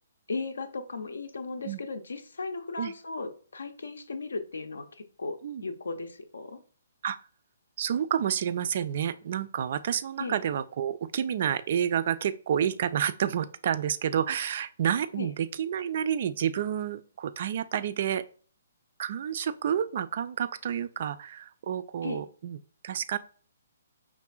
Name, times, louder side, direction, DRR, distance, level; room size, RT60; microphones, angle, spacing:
voice 1, 0.3-6.6 10.2-10.4 15.2-15.3 22.0-22.2, left 3 dB, 65° left, 10 dB, 0.5 m, -36 dB
voice 2, 7.8-18.2 19.0-22.6 22.8-23.2, right 9 dB, 45° right, 13 dB, 0.3 m, -29 dB
5.0 x 3.4 x 2.4 m, 0.42 s
figure-of-eight pair, 130°, 0 cm